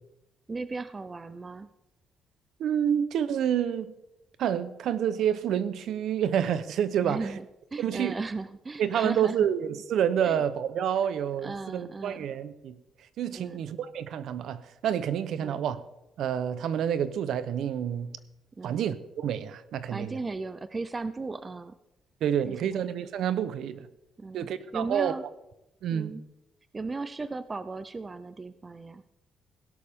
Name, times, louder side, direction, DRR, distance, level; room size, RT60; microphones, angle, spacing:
voice 1, 0.5-1.7 7.0-7.5 7.7-9.5 10.2-10.4 11.0-11.1 11.4-12.3 13.3-13.6 15.4-15.6 18.6-18.9 19.9-21.7 22.4-22.8 24.2-25.3 25.9-26.2 26.7-29.1, right 3 dB, 20° right, 0.4 m, -36 dB
voice 2, 2.6-3.9 4.4-7.3 7.8-8.1 8.8-12.8 13.2-15.8 16.2-18.2 18.6-20.2 22.2-23.9 24.3-25.1 25.8-26.1, right 9 dB, 65° right, 0.7 m, -28 dB
17.0 x 12.0 x 3.6 m
cardioid pair, 175°, 0 cm